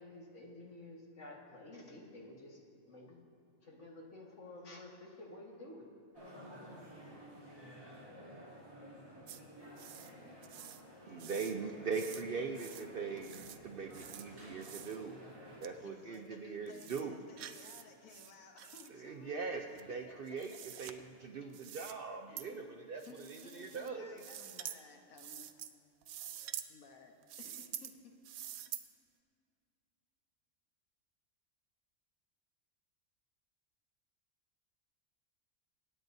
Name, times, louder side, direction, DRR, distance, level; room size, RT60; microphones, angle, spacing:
voice 1, 0.0-2.6 2.9-3.2 3.6-5.9, left 2 dB, 60° left, -2 dB, 2.0 m, -51 dB
sound 1, 6.1-15.6, equal, 25° right, 3.0 m, -53 dB
sound 2, 9.3-9.4 9.8-10.1 10.4-10.8 11.2-11.6 11.9-12.2 12.5-12.9 13.2-13.6 13.9-14.3 14.6-15.0 15.6-15.7 16.1-16.2 16.7-17.0 17.4-17.8 18.1-18.9 19.7-20.9 21.5-21.9 22.4-22.5 23.0-23.9 24.2-24.8 25.2-25.7 26.0-26.7 27.2-27.9 28.2-28.8, right 10 dB, 85° right, 1.0 m, -47 dB
voice 2, 11.1-15.2 15.6-17.2 18.9-20.5 20.8-24.2, right 5 dB, 55° right, 3 dB, 0.6 m, -41 dB
voice 3, 15.7-20.2 22.3-25.5 26.7-28.2, left 4 dB, 85° left, 3 dB, 1.5 m, -57 dB
26.5 x 9.1 x 2.7 m, 2.4 s
omnidirectional pair, 1.4 m